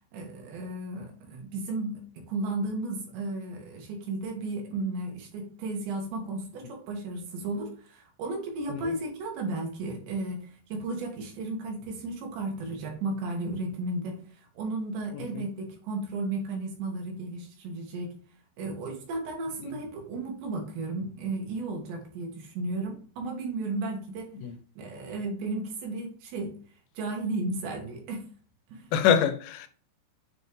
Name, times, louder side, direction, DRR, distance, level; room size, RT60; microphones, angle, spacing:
voice 1, 0.1-18.2 18.6-24.3 24.8-26.6 27.0-28.3 28.7-28.9, right 2 dB, 70° right, 4.0 m, -34 dB
voice 2, 28.9-29.7, left 8 dB, 90° left, 3.3 m, -26 dB
9.0 x 4.4 x 3.3 m
omnidirectional pair, 5.4 m